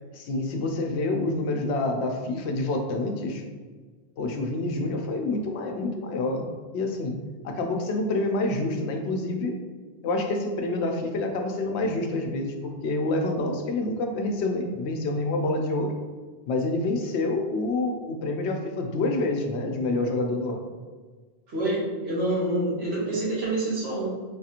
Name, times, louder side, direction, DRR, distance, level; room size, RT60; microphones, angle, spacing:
voice 1, 0.1-3.4 4.2-6.5 6.7-7.1 7.4-9.5 10.0-15.9 16.5-20.6, left 2 dB, 80° left, 3 dB, 0.8 m, -27 dB
voice 2, 21.5-24.1, right 1 dB, 70° right, -6 dB, 1.4 m, -27 dB
4.1 x 2.4 x 2.8 m, 1.4 s
omnidirectional pair, 1.1 m